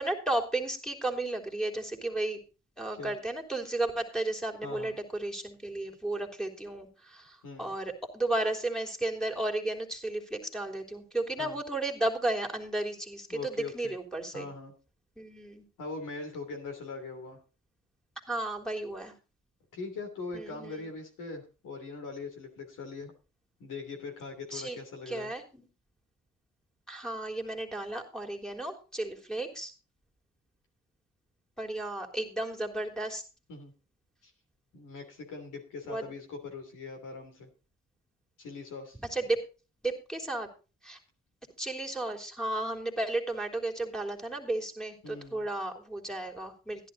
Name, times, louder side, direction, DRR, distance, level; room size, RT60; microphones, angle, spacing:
voice 1, 0.0-2.4 2.8-14.5 15.2-15.6 18.3-19.1 20.3-20.7 24.5-24.8 25.1-25.7 26.9-29.7 31.6-33.2 35.9-36.1 39.1-39.4 39.8-40.5 40.8-41.0 41.6-46.9, right 2 dB, ahead, 3 dB, 3.4 m, -33 dB
voice 2, 4.6-5.0 7.4-7.7 11.4-11.6 13.3-13.9 14.3-14.7 15.8-17.4 19.7-23.1 23.6-25.3 33.5-33.7 34.2-34.3 34.7-37.5 38.4-39.0 45.0-45.5, left 4 dB, 80° left, 4 dB, 3.1 m, -41 dB
12.0 x 10.5 x 4.0 m, 0.33 s
supercardioid pair, 55°, 31 cm